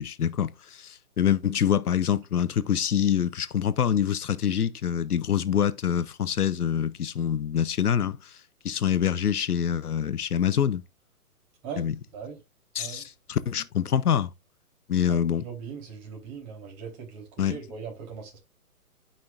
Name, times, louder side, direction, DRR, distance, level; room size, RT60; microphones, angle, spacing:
voice 1, 0.0-8.2 8.6-10.8 11.8-12.0 12.7-14.3 14.9-15.5 17.4-17.6, left 9 dB, 80° left, 0.8 m, -25 dB
voice 2, 15.1-18.4, right 6 dB, 30° right, 3.6 m, -40 dB
11.5 x 5.7 x 2.5 m
hypercardioid pair, 140°, 45 cm